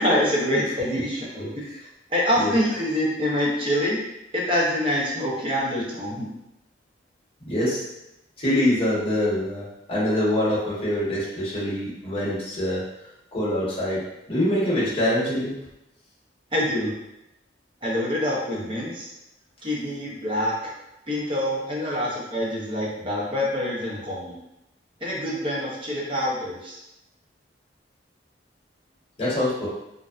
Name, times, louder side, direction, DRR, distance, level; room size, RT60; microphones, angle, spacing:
voice 1, 0.0-1.5 2.1-4.0 4.3-6.3 16.5-16.9 17.8-19.1 19.6-20.7 21.1-24.4 25.0-26.8, left 1 dB, 30° right, -5 dB, 0.7 m, -25 dB
voice 2, 7.4-7.8 8.4-12.8 13.3-14.0 14.3-15.6 29.2-29.7, left 1 dB, 30° left, -8 dB, 1.0 m, -24 dB
2.6 x 2.1 x 2.4 m, 0.87 s
head